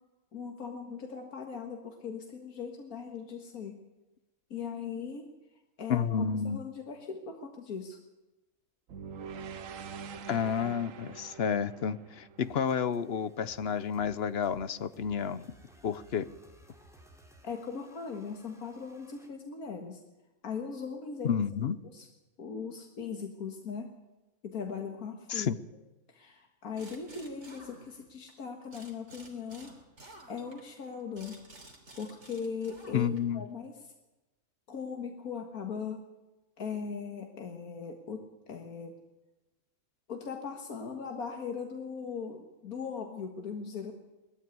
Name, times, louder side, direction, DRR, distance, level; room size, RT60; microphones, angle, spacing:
voice 1, 0.3-3.8 4.5-5.3 5.8-8.0 17.4-20.0 20.4-21.3 21.9-22.1 22.4-23.9 24.4-25.6 26.1-29.7 30.3-31.4 32.0-33.7 34.7-36.0 36.6-38.9 40.1-43.9, left 6 dB, 90° left, 3 dB, 2.1 m, -39 dB
voice 2, 5.9-6.6 10.3-15.4 15.8-16.3 21.2-21.8 25.3-25.5 32.9-33.4, left 7 dB, 50° left, 15 dB, 0.9 m, -30 dB
sound 1, 8.9-13.1, right 6 dB, 70° right, 1.2 m, -44 dB
sound 2, 12.4-19.3, equal, ahead, 3.0 m, -59 dB
sound 3, 26.8-28.3 28.7-33.4, right 1 dB, 50° right, 3.7 m, -53 dB
19.5 x 14.0 x 9.5 m, 1.0 s
omnidirectional pair, 1.5 m